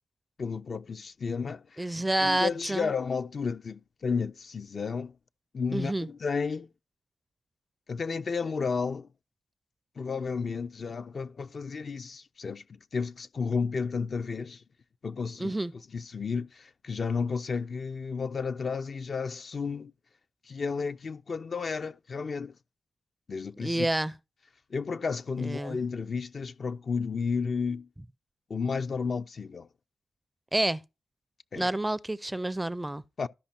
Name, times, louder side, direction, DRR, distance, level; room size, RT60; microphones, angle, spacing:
voice 1, 0.4-1.9 2.2-5.2 5.5-6.7 7.9-9.1 10.0-14.6 15.0-15.6 15.9-19.9 20.5-22.5 23.3-23.9 24.7-27.9 28.5-29.7 31.5-31.7 33.2-33.3, left 5 dB, 50° left, 0.6 m, -32 dB
voice 2, 1.8-2.9 5.7-6.1 15.4-15.7 23.6-24.1 25.4-25.8 30.5-30.8 31.6-33.0, right 1 dB, 15° right, 0.5 m, -28 dB
13.0 x 5.2 x 4.2 m
cardioid pair, 70°, 0 cm